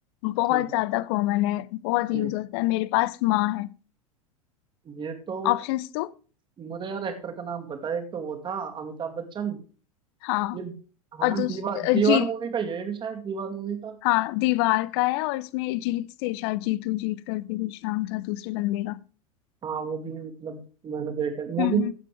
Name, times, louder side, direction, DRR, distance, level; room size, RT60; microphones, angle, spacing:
voice 1, 0.2-3.7 5.4-6.1 10.2-10.6 11.2-12.3 14.0-19.0 21.6-21.9, left 18 dB, 45° left, 0.6 m, -26 dB
voice 2, 4.9-5.6 6.6-9.6 10.5-10.7 11.1-14.0 19.6-21.8, right 7 dB, 25° right, 2.3 m, -30 dB
15.5 x 7.5 x 3.3 m
figure-of-eight pair, 85°, 18 cm